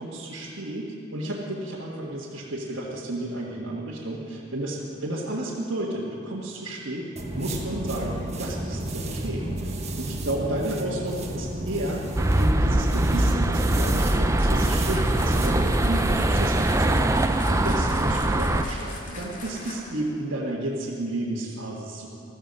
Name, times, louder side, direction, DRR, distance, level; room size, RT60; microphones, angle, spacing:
voice 1, 0.0-7.1 7.4-12.0 12.3-22.1, right 1 dB, 65° right, -6 dB, 1.7 m, -32 dB
sound 1, 7.2-15.5, right 1 dB, 35° right, 1.3 m, -32 dB
sound 2, 12.2-18.6, right 1 dB, 15° right, 0.5 m, -22 dB
sound 3, 13.8-20.1, left 2 dB, 40° left, 2.2 m, -41 dB
14.5 x 14.0 x 5.4 m, 2.8 s
head